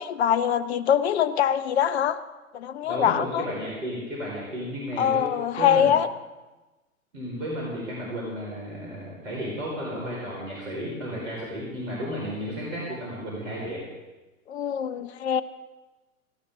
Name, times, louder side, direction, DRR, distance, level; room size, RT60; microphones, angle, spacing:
voice 1, 0.0-2.2 2.5-3.4 5.0-6.1 14.5-15.4, left 9 dB, 50° left, 13 dB, 0.8 m, -23 dB
voice 2, 2.8-5.3 5.6-5.9 7.1-13.8, equal, 65° right, -4 dB, 4.9 m, -33 dB
18.5 x 16.0 x 3.8 m, 1.1 s
figure-of-eight pair, 105°, 42 cm